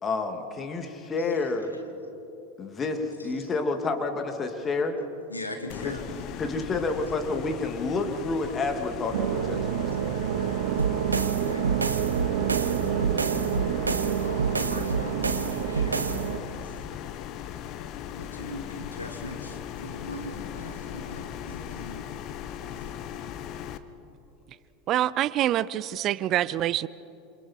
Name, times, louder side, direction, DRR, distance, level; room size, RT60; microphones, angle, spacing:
voice 1, 0.0-1.7 2.6-5.0 5.8-5.9 6.4-10.2, left 3 dB, 25° left, 2.8 m, -29 dB
voice 2, 5.3-6.4 9.9-10.0 10.4-10.6 11.1-11.8 14.2-16.8 18.1-22.2 22.6-23.0, left 1 dB, 90° left, 2.1 m, -41 dB
sound 1, 5.7-23.8, left 10 dB, 45° left, 1.1 m, -38 dB
sound 2, 9.1-16.4, right 10 dB, 65° right, 0.9 m, -28 dB
sound 3, 10.8-16.3, right 4 dB, 85° right, 1.2 m, -29 dB
voice 3, 24.9-26.9, right 12 dB, 40° right, 0.5 m, -25 dB
28.0 x 27.5 x 4.8 m
figure-of-eight pair, 80°, 0 cm